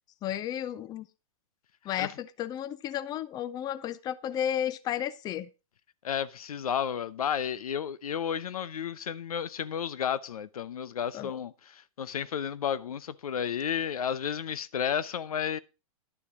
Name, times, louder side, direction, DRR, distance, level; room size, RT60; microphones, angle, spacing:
voice 1, 0.2-1.1 1.8-5.5 11.1-11.3, left 10 dB, 20° left, 0.5 m, -33 dB
voice 2, 6.0-15.6, left 8 dB, 90° left, 0.7 m, -32 dB
11.0 x 7.1 x 4.8 m
hypercardioid pair, 130°, 18 cm